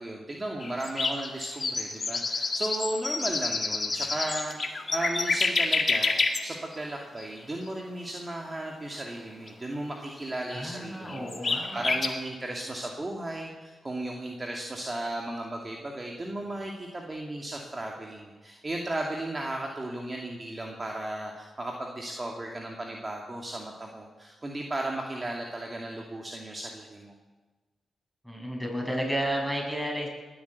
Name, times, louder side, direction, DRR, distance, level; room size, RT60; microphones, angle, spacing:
voice 1, 0.0-27.1, right 1 dB, 35° right, 0 dB, 2.4 m, -35 dB
sound 1, 0.6-6.4 6.7-6.8 7.2-7.3 9.5-9.6 10.2-10.3 10.5-10.6 11.1-12.1, left 3 dB, 50° left, 1.9 m, -28 dB
voice 2, 10.5-11.9 28.2-30.1, equal, 5° right, -1 dB, 7.6 m, -32 dB
20.0 x 8.7 x 8.3 m, 1.2 s
supercardioid pair, 40°, 0 cm